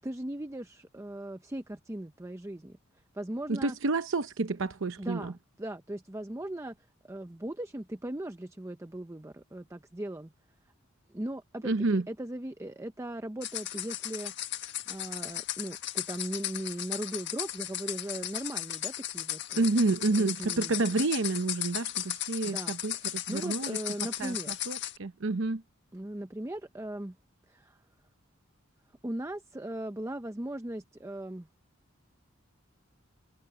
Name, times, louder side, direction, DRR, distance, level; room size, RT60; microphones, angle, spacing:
voice 1, 0.0-2.8 3.1-3.7 5.0-6.8 7.1-10.3 11.1-14.3 14.9-19.7 20.1-21.0 22.4-24.5 25.9-27.2 27.5-27.8 29.0-31.5, right 1 dB, 15° right, 0.7 m, -38 dB
voice 2, 3.5-5.3 11.6-12.0 19.6-23.8 24.2-24.3 24.7-25.6, right 3 dB, 70° right, 0.8 m, -29 dB
sound 1, 13.4-25.0, left 12 dB, 60° left, 1.5 m, -36 dB
head